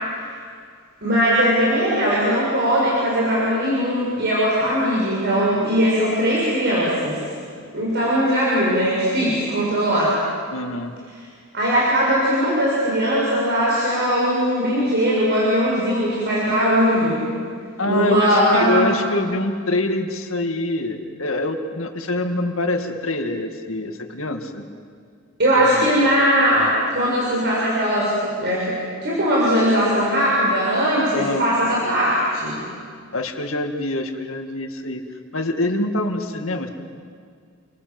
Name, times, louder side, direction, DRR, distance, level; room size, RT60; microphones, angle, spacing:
voice 1, 1.0-7.2 7.7-10.2 11.5-17.2 17.8-18.9 25.4-28.7 29.0-32.6, equal, 50° right, -6 dB, 6.8 m, -19 dB
voice 2, 10.5-10.9 17.8-24.6 25.6-25.9 31.1-31.5 33.1-35.0 35.3-36.7, left 2 dB, 70° left, 5 dB, 2.3 m, -25 dB
29.5 x 24.0 x 7.9 m, 2.1 s
head